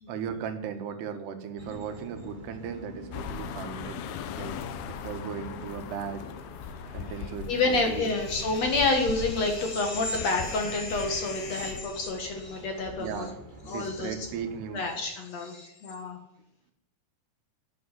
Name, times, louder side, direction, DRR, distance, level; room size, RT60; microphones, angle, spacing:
voice 1, 0.1-4.0 4.4-4.6 4.9-6.2 6.9-8.1 13.0-14.8, right 7 dB, 85° right, 7 dB, 3.4 m, -37 dB
sound 1, 1.6-14.8, equal, 15° right, 2.3 m, -47 dB
sound 2, 3.1-11.8, left 8 dB, 75° left, 2.7 m, -39 dB
voice 2, 6.7-7.1 7.5-13.3 13.7-14.1 14.7-16.2, left 3 dB, 50° left, 4 dB, 2.3 m, -28 dB
11.5 x 8.6 x 9.8 m, 0.81 s
omnidirectional pair, 4.6 m